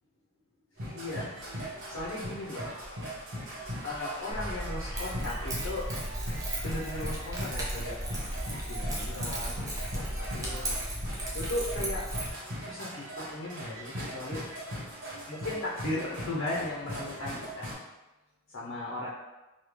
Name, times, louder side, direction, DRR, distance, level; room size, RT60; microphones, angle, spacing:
sound 1, 0.8-17.7, equal, 60° right, 1.3 m, -40 dB
voice 1, 0.9-2.7 3.8-5.9 6.6-8.0 8.5-9.6 9.9-10.8 11.3-12.0 12.6-14.4 15.3-17.8 18.5-19.1, left 1 dB, 60° left, -5 dB, 0.6 m, -37 dB
Keys jangling, 4.3-12.3, right 1 dB, 15° right, 0.4 m, -35 dB
3.5 x 2.2 x 3.1 m, 1.1 s
head